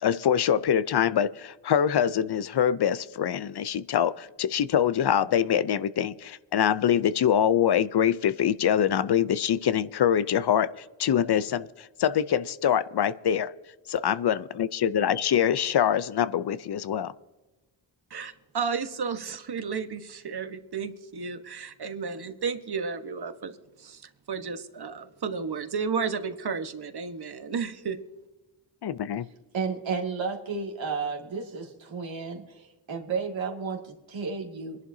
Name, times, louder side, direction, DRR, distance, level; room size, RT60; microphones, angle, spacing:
voice 1, 0.0-13.5 13.9-17.1 28.8-29.3, left 9 dB, 60° left, 0.6 m, -24 dB
voice 2, 18.1-28.0, right 5 dB, 55° right, 1.4 m, -33 dB
voice 3, 29.5-34.8, right 5 dB, 80° right, 2.3 m, -32 dB
23.0 x 11.0 x 2.8 m
cardioid pair, 50°, 45 cm